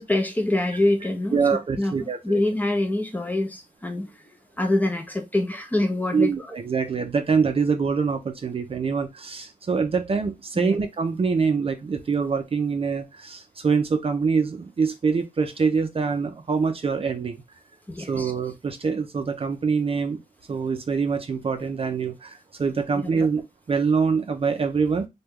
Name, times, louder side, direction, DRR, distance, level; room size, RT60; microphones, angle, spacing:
voice 1, 0.0-1.4 1.8-6.5 10.6-10.8 17.9-18.3, left 1 dB, 10° left, 0.6 m, -25 dB
voice 2, 1.3-2.4 6.1-17.4 18.0-20.2 20.5-25.1, right 5 dB, 40° right, 0.5 m, -25 dB
3.0 x 2.2 x 3.5 m
wide cardioid pair, 125°, 15 cm